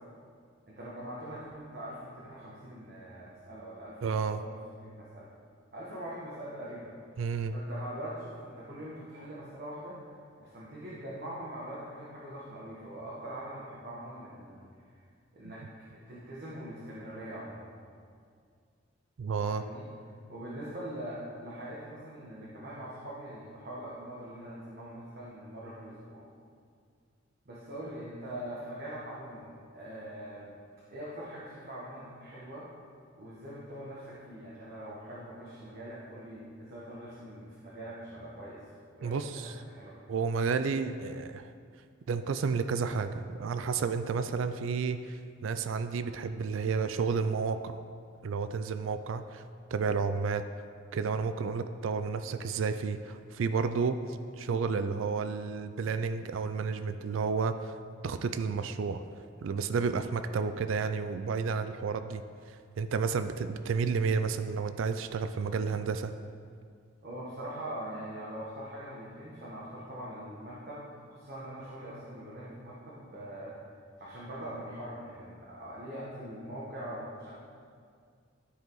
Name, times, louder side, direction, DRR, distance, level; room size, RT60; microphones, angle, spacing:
voice 1, 0.7-4.5 4.8-5.3 5.7-6.9 7.5-10.0 10.4-14.7 15.3-15.6 15.9-17.7 19.5-19.9 20.3-26.2 27.4-30.6 30.9-32.7 33.2-40.1 67.0-73.6 74.0-77.3, right 1 dB, 50° right, -7 dB, 1.4 m, -43 dB
voice 2, 4.0-4.4 7.2-7.5 15.4-15.5 19.2-19.6 39.0-39.5 40.1-41.5 42.1-47.8 48.2-49.4 49.7-50.4 50.9-57.7 58.0-59.0 59.4-62.2 62.8-66.1, right 5 dB, 80° right, 10 dB, 0.4 m, -31 dB
13.0 x 4.8 x 3.9 m, 2.2 s
head